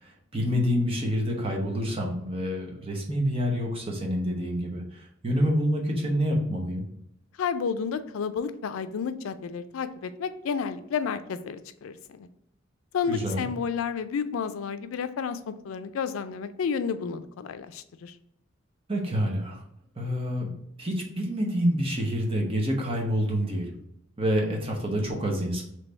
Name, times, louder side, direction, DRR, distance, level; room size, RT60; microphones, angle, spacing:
voice 1, 0.0-6.8 13.1-13.5 18.9-19.6 20.0-20.5 20.8-23.7 24.2-25.6, equal, 30° right, 0 dB, 0.9 m, -27 dB
voice 2, 7.4-12.3 12.9-18.1, left 6 dB, 85° left, 11 dB, 0.4 m, -31 dB
3.4 x 3.2 x 3.9 m, 0.74 s
head